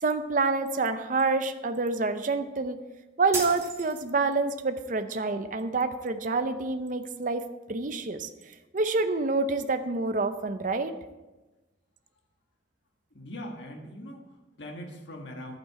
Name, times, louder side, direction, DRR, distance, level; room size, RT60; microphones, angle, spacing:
voice 1, 0.0-2.8 3.2-7.4 7.7-8.3 8.7-11.0, right 3 dB, 45° right, 9 dB, 0.7 m, -27 dB
sound 1, 3.3-4.4, right 4 dB, 15° right, 2.2 m, -35 dB
voice 2, 13.1-15.6, equal, 85° left, 2 dB, 1.6 m, -41 dB
11.5 x 8.8 x 4.8 m, 1.1 s
head